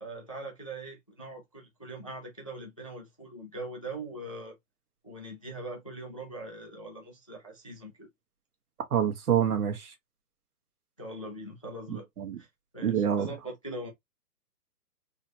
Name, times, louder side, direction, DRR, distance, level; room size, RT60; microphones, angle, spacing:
voice 1, 0.0-4.5 5.0-8.1 11.0-12.1 12.4-12.5 12.7-13.9, right 1 dB, 25° left, 0.4 m, -41 dB
voice 2, 8.9-9.9 11.9-12.4 12.8-13.3, right 9 dB, 65° right, 1.6 m, -27 dB
4.0 x 3.0 x 2.7 m
hypercardioid pair, 170°, 48 cm